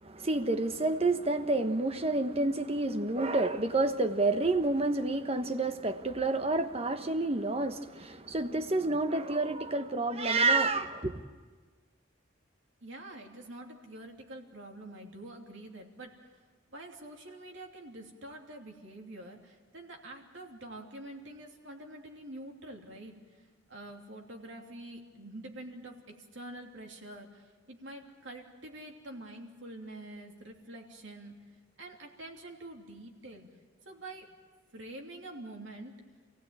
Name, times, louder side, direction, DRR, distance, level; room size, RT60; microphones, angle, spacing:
voice 1, 0.0-11.2, right 2 dB, 30° right, 1.2 m, -29 dB
voice 2, 12.8-16.1 16.7-23.4 23.7-31.3 31.8-33.5 33.8-34.3 34.7-35.9, right 1 dB, 65° right, 3.1 m, -46 dB
28.0 x 16.5 x 8.9 m
head